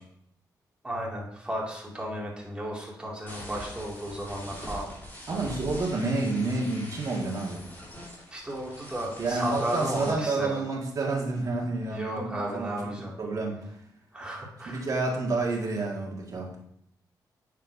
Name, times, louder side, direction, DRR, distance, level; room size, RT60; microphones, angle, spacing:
voice 1, 0.8-4.9 8.3-10.6 11.9-13.1 14.1-14.9, right 1 dB, 15° right, -3 dB, 2.4 m, -34 dB
sound 1, 3.3-10.1, left 1 dB, 25° left, 3.2 m, -43 dB
voice 2, 5.3-7.6 9.2-12.9 13.2-13.7 14.7-16.6, right 3 dB, 50° right, -1 dB, 1.8 m, -29 dB
8.8 x 6.6 x 2.7 m, 0.72 s
cardioid pair, 90°, 8 cm